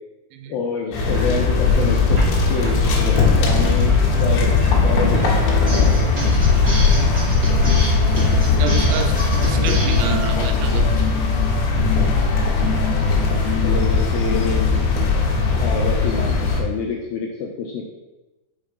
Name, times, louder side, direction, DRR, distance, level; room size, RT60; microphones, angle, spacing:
voice 1, 0.5-2.2 2.5-6.1 13.6-14.6 15.5-17.8, left 5 dB, 85° left, 0 dB, 2.1 m, -27 dB
sound 1, 0.9-16.6, left 4 dB, 70° left, 1.9 m, -18 dB
sound 2, 1.0-10.1, equal, 55° right, 1.0 m, -27 dB
voice 2, 8.4-9.2 9.4-10.9, right 8 dB, 85° right, 4 dB, 2.2 m, -29 dB
sound 3, 10.1-14.9, left 9 dB, 55° left, 2.3 m, -30 dB
5.6 x 4.7 x 5.1 m, 1.1 s
omnidirectional pair, 4.9 m